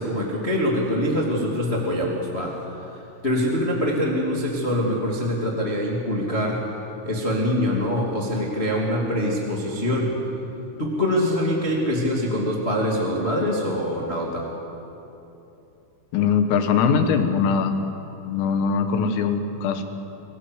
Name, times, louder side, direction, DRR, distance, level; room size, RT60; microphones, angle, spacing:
voice 1, 0.0-2.8 3.2-6.6 7.0-10.1 10.8-14.5, equal, 25° left, -2 dB, 1.4 m, -24 dB
voice 2, 16.1-17.7 18.3-19.8, left 6 dB, 80° left, 7 dB, 4.1 m, -21 dB
26.0 x 18.0 x 8.1 m, 2.9 s
omnidirectional pair, 5.9 m